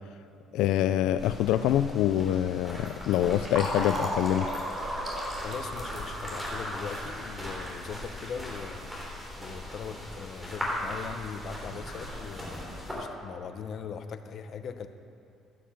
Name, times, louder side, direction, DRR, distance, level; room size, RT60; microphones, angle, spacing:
voice 1, 0.5-4.5, left 11 dB, 85° left, 11 dB, 0.4 m, -25 dB
sound 1, 1.2-12.9, equal, 5° right, 3.4 m, -39 dB
Fill (with liquid), 2.9-9.2, equal, 25° right, 3.1 m, -36 dB
voice 2, 5.4-8.9 9.4-14.9, left 6 dB, 45° left, 8 dB, 0.8 m, -40 dB
15.5 x 7.1 x 7.3 m, 2.7 s
cardioid pair, 165°, 0 cm